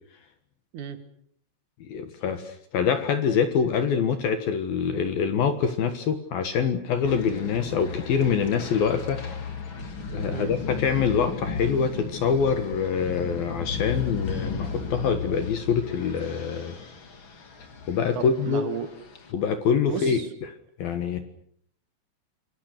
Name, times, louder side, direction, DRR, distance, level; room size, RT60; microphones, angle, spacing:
voice 1, 1.8-9.2 10.1-16.8 17.9-18.7 19.3-20.5 20.8-21.2, left 6 dB, 60° left, 8 dB, 2.7 m, -25 dB
sound 1, 7.0-19.3, left 5 dB, 40° left, 1.9 m, -35 dB
voice 2, 18.1-18.9 19.9-20.3, right 7 dB, 55° right, 9 dB, 2.5 m, -33 dB
28.0 x 24.5 x 6.7 m, 0.65 s
omnidirectional pair, 5.8 m